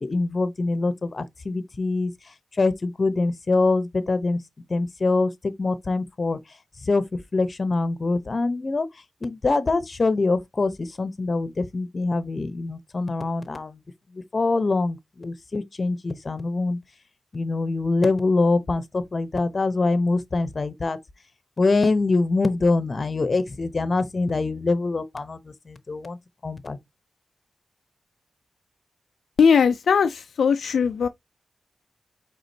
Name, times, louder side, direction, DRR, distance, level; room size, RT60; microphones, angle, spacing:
voice 1, 0.0-2.1 2.6-4.4 4.7-5.3 5.6-6.4 6.9-7.0 7.3-8.9 9.2-13.8 14.3-16.8 17.3-21.0 21.6-25.4 25.7-26.2 26.4-26.8, left 3 dB, 45° left, 0.8 m, -24 dB
voice 2, 29.4-31.1, left 6 dB, 80° left, 0.3 m, -19 dB
5.0 x 3.7 x 2.7 m
cardioid pair, 60°, 0 cm